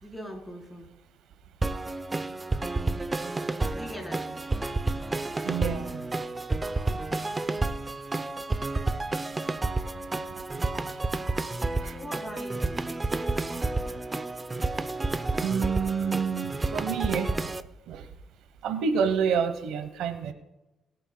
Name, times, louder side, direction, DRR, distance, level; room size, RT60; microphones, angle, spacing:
voice 1, 0.0-0.9 3.7-4.4 6.9-7.3 11.9-12.7, equal, 5° left, 0 dB, 4.0 m, -41 dB
sound 1, 1.6-17.6, right 2 dB, 20° right, 0.6 m, -30 dB
voice 2, 5.4-6.1 10.3-10.5 11.8-11.9 14.6-14.7 15.4-17.6 17.9-18.1 18.6-20.3, right 6 dB, 85° right, 10 dB, 1.0 m, -29 dB
23.0 x 9.1 x 2.3 m, 0.98 s
cardioid pair, 90°, 0 cm